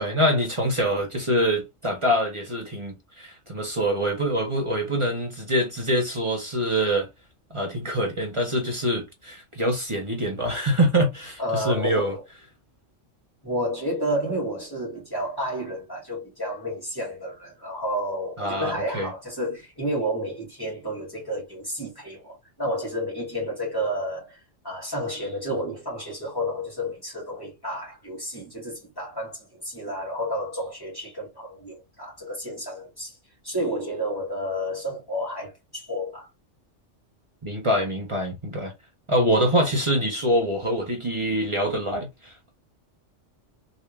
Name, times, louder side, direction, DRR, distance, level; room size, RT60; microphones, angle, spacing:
voice 1, 0.0-7.1 7.5-12.2 18.4-19.1 37.4-38.7 39.1-42.5, equal, 30° right, 0.8 m, -25 dB
voice 2, 11.4-12.2 13.4-33.2 33.4-36.3, equal, 20° left, 1.9 m, -31 dB
3.4 x 2.7 x 3.1 m
omnidirectional pair, 1.3 m